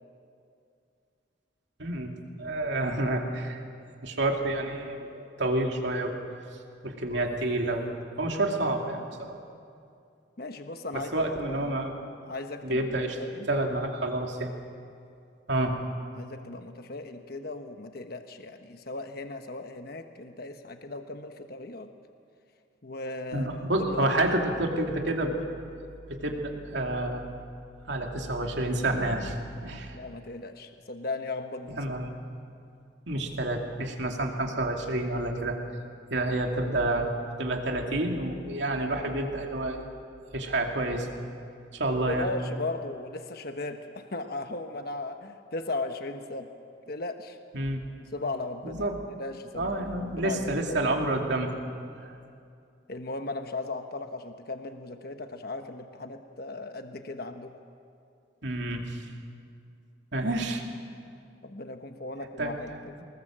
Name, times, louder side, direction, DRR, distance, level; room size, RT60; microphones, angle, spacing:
voice 1, 1.8-2.1 2.4-3.6 4.0-6.2 6.8-7.9 8.2-9.4 10.9-11.9 12.6-13.2 13.5-14.5 15.5-15.8 23.3-25.4 25.8-27.3 27.9-29.4 29.6-30.0 31.7-32.1 33.1-35.6 36.1-37.1 37.4-39.8 40.3-41.1 41.7-42.3 47.5-47.8 48.6-49.0 49.5-51.5 52.0-52.1 58.4-59.0 60.1-60.6 62.4-63.0, right 1 dB, 65° right, 2 dB, 2.7 m, -29 dB
voice 2, 10.4-11.9 12.2-13.5 16.1-21.9 22.8-24.2 29.9-31.8 42.1-46.5 46.9-47.4 48.1-48.9 49.2-50.8 52.9-57.5 61.4-62.9, left 2 dB, 50° left, 6 dB, 1.2 m, -37 dB
24.5 x 20.5 x 7.6 m, 2.5 s
head